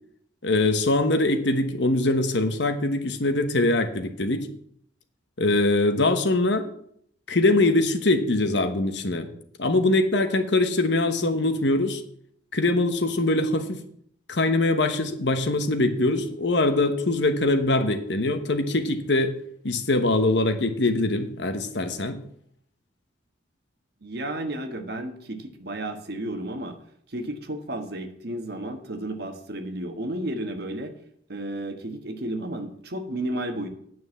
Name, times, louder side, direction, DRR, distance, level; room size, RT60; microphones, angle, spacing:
voice 1, 0.4-4.5 5.4-6.7 7.3-9.3 9.6-12.0 12.5-13.8 14.3-19.3 19.6-22.2, left 2 dB, 65° left, 8 dB, 1.1 m, -23 dB
voice 2, 24.0-26.8 27.1-30.9 31.3-33.7, right 1 dB, 55° right, 6 dB, 1.3 m, -32 dB
9.5 x 6.2 x 7.2 m, 0.66 s
head